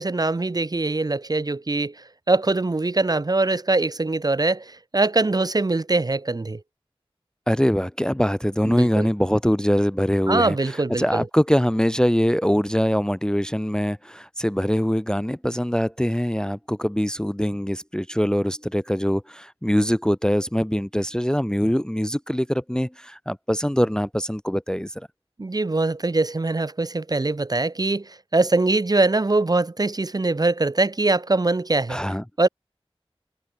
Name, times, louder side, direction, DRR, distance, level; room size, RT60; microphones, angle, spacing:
voice 1, 0.0-1.9 2.3-6.6 8.6-9.1 10.3-11.2 25.4-32.0 32.4-32.5, right 2 dB, 40° right, 0.5 m, -22 dB
voice 2, 7.5-25.1 31.9-32.2, equal, 5° left, 0.5 m, -23 dB
wide cardioid pair, 55°, 10 cm